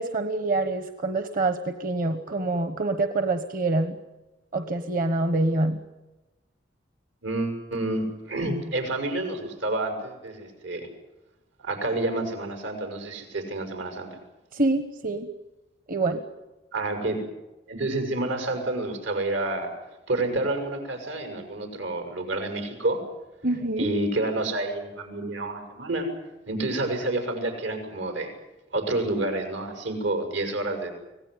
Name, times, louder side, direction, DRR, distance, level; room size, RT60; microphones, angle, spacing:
voice 1, 0.0-4.0 4.5-5.8 14.5-15.3 15.9-16.2 23.4-23.9, right 2 dB, 45° right, 9 dB, 1.2 m, -26 dB
voice 2, 7.2-10.9 11.6-14.1 16.7-17.2 17.7-19.7 20.1-23.0 23.8-26.1 26.5-28.3 28.7-30.9, right 2 dB, 85° right, 5 dB, 6.3 m, -29 dB
25.0 x 18.0 x 9.6 m, 1.1 s
head